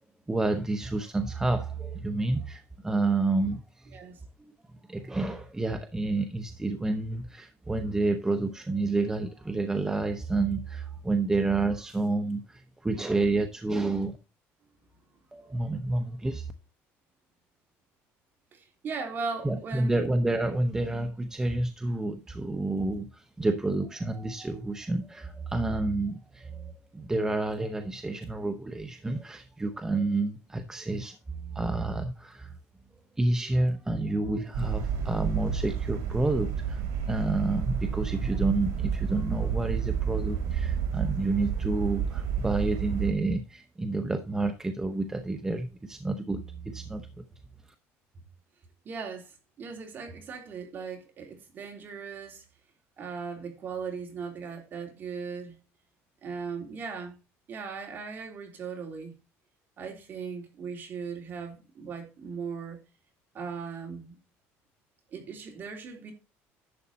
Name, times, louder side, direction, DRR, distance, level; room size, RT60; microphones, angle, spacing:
voice 1, 0.3-4.0 4.4-4.5 4.9-14.2 15.3-16.5 19.4-31.2 31.5-32.5 33.2-47.2, right 2 dB, 10° right, 0.9 m, -29 dB
voice 2, 18.5-20.0 48.8-52.4 53.0-55.6 56.2-57.2 57.5-59.1 59.8-62.8 63.3-64.2 65.1-66.1, right 5 dB, 40° right, 3.3 m, -38 dB
sound 1, 34.5-43.1, right 7 dB, 80° right, 3.0 m, -30 dB
11.5 x 7.3 x 4.1 m
cardioid pair, 140°, 5 cm